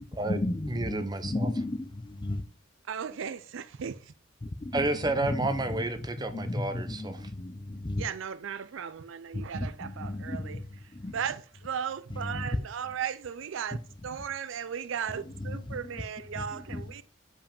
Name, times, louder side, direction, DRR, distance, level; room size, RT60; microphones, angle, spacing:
voice 1, 0.0-2.4 4.4-4.9 5.3-5.4 6.3-8.0 9.3-11.2 12.1-12.5 15.3-16.0 16.3-17.0, left 2 dB, 25° left, 0.5 m, -34 dB
voice 2, 0.7-1.5 4.7-7.3, right 2 dB, 20° right, 0.7 m, -31 dB
voice 3, 2.9-4.0 8.0-10.6 11.1-13.8 14.0-17.0, right 7 dB, 65° right, 0.4 m, -36 dB
5.3 x 5.0 x 5.2 m
head